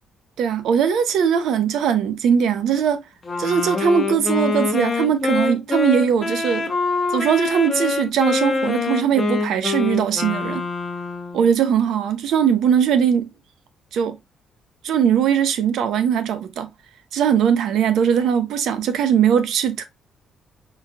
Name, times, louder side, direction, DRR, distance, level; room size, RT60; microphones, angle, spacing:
voice 1, 0.4-3.0 3.4-6.6 7.1-10.6 11.3-13.3 13.9-14.2 14.8-16.7 17.1-19.8, right 8 dB, 75° right, 0.7 m, -20 dB
Wind instrument woodwind instrument, 3.2-11.5, left 4 dB, 30° left, 0.9 m, -24 dB
4.0 x 4.0 x 2.3 m
cardioid pair, 115°, 0 cm